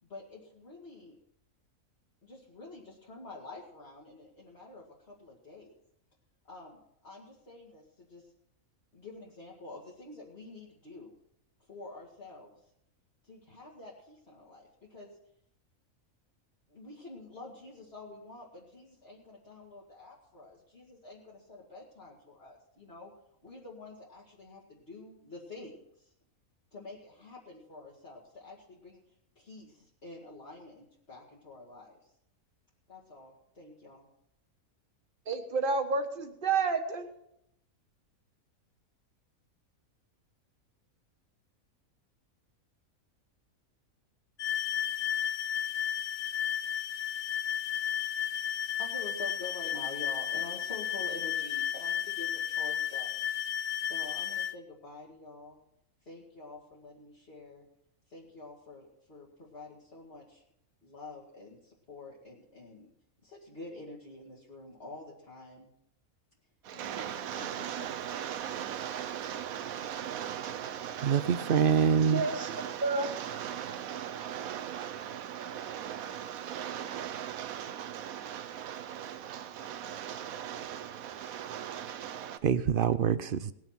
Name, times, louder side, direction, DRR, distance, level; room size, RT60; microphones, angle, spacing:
voice 1, 0.0-1.2 2.2-5.7 6.5-8.3 8.9-11.1 11.7-12.6 13.2-15.2 16.7-23.1 23.4-26.1 26.7-32.1 32.9-34.1 48.5-53.1 53.8-55.6 56.0-57.7 58.1-60.4 60.8-62.9 63.2-65.7 66.7-67.9, left 2 dB, 45° left, -5 dB, 2.5 m, -48 dB
voice 2, 35.3-37.1 72.1-73.1, right 4 dB, 40° right, 5 dB, 1.6 m, -30 dB
sound 1, 44.4-54.5, left 9 dB, 80° left, 0.3 m, -33 dB
Rain, 66.6-82.4, right 9 dB, 75° right, 1.2 m, -38 dB
voice 3, 71.0-72.2 82.4-83.5, right 7 dB, 55° right, 14 dB, 0.6 m, -25 dB
19.5 x 7.3 x 5.9 m, 0.77 s
omnidirectional pair, 1.5 m